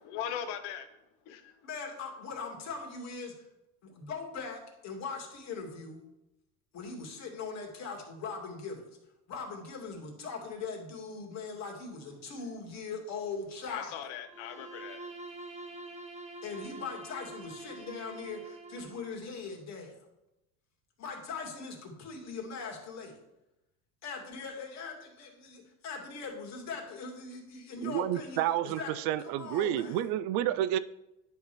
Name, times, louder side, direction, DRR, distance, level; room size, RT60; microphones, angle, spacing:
voice 1, 0.0-0.9 1.2-1.6 13.7-15.2 15.8-15.9, left 9 dB, 85° left, 1.0 m, -39 dB
voice 2, 1.6-3.4 3.8-6.0 6.7-8.8 9.3-14.0 16.4-19.9 21.0-23.2 24.0-28.9 29.2-30.0, left 4 dB, 45° left, 2.2 m, -40 dB
Bowed string instrument, 14.2-19.2, right 2 dB, 20° right, 1.3 m, -46 dB
voice 3, 27.8-30.8, right 12 dB, 70° right, 0.5 m, -30 dB
10.0 x 3.5 x 5.9 m
cardioid pair, 135°, 36 cm